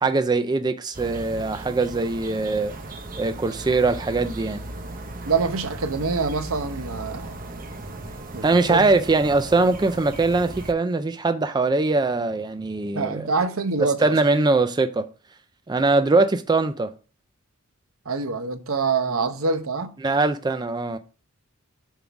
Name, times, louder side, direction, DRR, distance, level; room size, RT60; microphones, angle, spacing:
voice 1, 0.0-2.7 3.2-4.6 8.4-13.3 14.0-15.1 15.7-16.9 20.0-21.0, right 3 dB, 20° right, 0.4 m, -22 dB
sound 1, 0.9-10.7, right 2 dB, 40° right, 0.9 m, -37 dB
voice 2, 5.2-7.4 8.3-8.9 12.9-14.2 18.1-19.9, right 4 dB, 70° right, 0.8 m, -25 dB
7.0 x 3.8 x 5.9 m
head